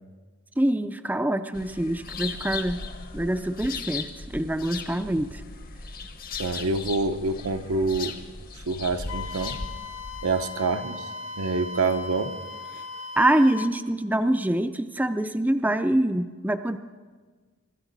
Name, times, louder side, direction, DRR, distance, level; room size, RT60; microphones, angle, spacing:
voice 1, 0.6-2.9 3.1-5.4 13.2-16.8, right 1 dB, 10° right, 9 dB, 0.4 m, -25 dB
sound 1, 1.5-10.5, left 4 dB, 45° left, 0.9 m, -37 dB
voice 2, 6.4-8.1 8.7-9.6 10.2-11.1 11.4-12.3 12.7-12.8, right 3 dB, 85° right, 7 dB, 0.9 m, -26 dB
Wind instrument woodwind instrument, 9.1-13.7, left 4 dB, 70° left, 0.9 m, -38 dB
24.0 x 13.0 x 4.0 m, 1.4 s
head